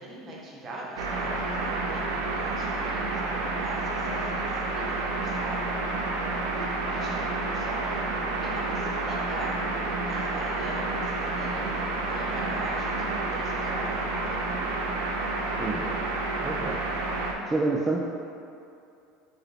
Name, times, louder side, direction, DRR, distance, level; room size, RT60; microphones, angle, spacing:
voice 1, 0.0-5.7 6.5-7.9 8.4-14.4, right 1 dB, 35° right, -3 dB, 0.7 m, -40 dB
sound 1, 1.0-17.3, right 3 dB, 80° right, 0.4 m, -30 dB
Musical instrument, 5.3-13.8, left 3 dB, 50° left, 0.5 m, -46 dB
voice 2, 15.6-16.0 16.4-16.8 17.1-18.0, right 3 dB, 15° right, -4 dB, 0.3 m, -29 dB
4.5 x 2.1 x 3.3 m, 2.5 s
supercardioid pair, 110°, 0 cm